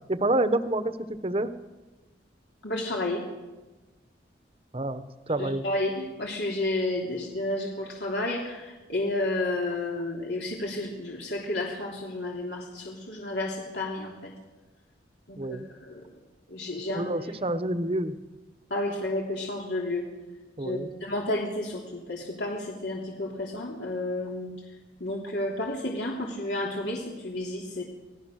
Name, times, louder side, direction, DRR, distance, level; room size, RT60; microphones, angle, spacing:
voice 1, 0.1-1.5 4.7-5.6 15.4-15.7 16.9-18.2 20.6-20.9, right 1 dB, 35° right, 11 dB, 1.1 m, -28 dB
voice 2, 2.6-3.2 5.4-14.3 15.3-16.1 16.5-17.0 18.7-20.0 20.6-24.5 25.0-27.8, left 1 dB, 75° left, -2 dB, 3.0 m, -31 dB
26.5 x 17.5 x 6.5 m, 1.2 s
head